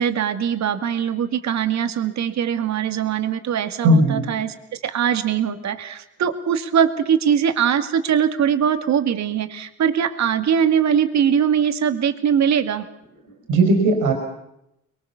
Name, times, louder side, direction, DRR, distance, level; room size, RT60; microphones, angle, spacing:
voice 1, 0.0-12.9, right 8 dB, 65° right, 9 dB, 2.2 m, -21 dB
voice 2, 3.8-4.3 13.5-14.1, right 1 dB, 90° right, 4 dB, 4.7 m, -16 dB
24.5 x 22.0 x 7.2 m, 0.81 s
cardioid pair, 90°, 30 cm